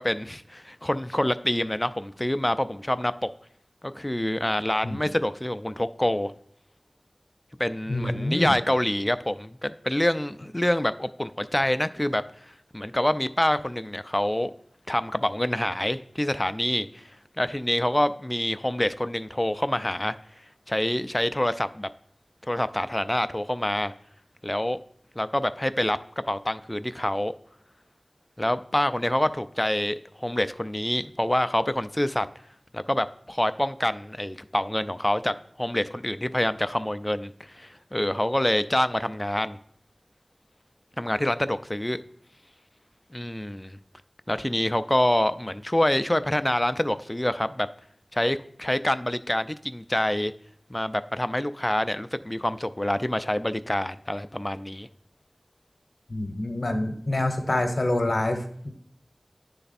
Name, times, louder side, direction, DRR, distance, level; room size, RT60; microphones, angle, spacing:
voice 1, 0.0-3.3 3.8-6.3 7.6-12.2 12.7-14.5 14.9-17.0 17.4-20.2 20.7-21.9 22.5-23.9 24.4-24.8 25.2-26.0 26.3-27.3 28.4-32.3 32.7-39.6 41.0-42.0 43.1-43.8 44.3-47.7 48.1-50.3 50.7-54.9, left 1 dB, 25° left, 12 dB, 0.3 m, -26 dB
voice 2, 7.9-8.5 56.1-58.7, left 1 dB, 80° left, 6 dB, 0.8 m, -26 dB
9.6 x 3.4 x 4.1 m, 0.64 s
wide cardioid pair, 40°, 0 cm